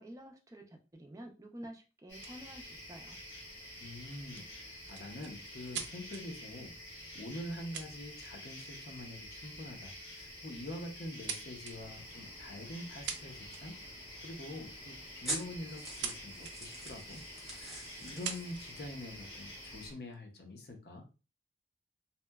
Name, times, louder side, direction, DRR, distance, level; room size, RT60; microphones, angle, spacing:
voice 1, 0.0-3.2, right 1 dB, 20° right, 2 dB, 0.4 m, -50 dB
sound 1, 2.1-19.9, left 1 dB, 80° left, 1.0 m, -49 dB
sound 2, 2.1-2.4 4.3-6.2 7.3-7.4 7.7-8.5 8.9-9.1 10.1-10.3 10.7-11.8 12.8-12.9 13.1-13.8 15.3-16.1 16.4-16.5 17.2-17.3 18.0-18.7 19.4-20.2, right 7 dB, 85° right, 0.5 m, -43 dB
voice 2, 3.8-6.8 7.1-13.8 14.2-17.2 17.5-21.0, left 1 dB, 60° left, 3 dB, 0.6 m, -45 dB
sound 3, 11.7-19.9, right 1 dB, ahead, 0.7 m, -47 dB
2.7 x 2.1 x 2.2 m, 0.32 s
head